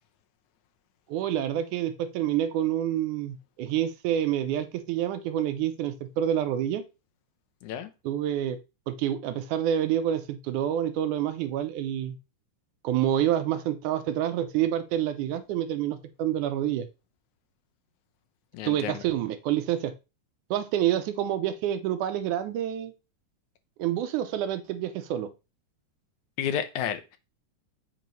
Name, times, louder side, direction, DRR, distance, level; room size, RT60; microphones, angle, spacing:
voice 1, 1.1-6.8 8.0-8.6 8.9-12.2 12.8-16.9 18.6-19.9 20.5-22.9 23.8-25.3, right 11 dB, 85° right, 2.2 m, -28 dB
voice 2, 18.5-19.0 26.4-27.2, left 9 dB, 75° left, 2.1 m, -31 dB
7.5 x 3.0 x 5.3 m
omnidirectional pair, 3.6 m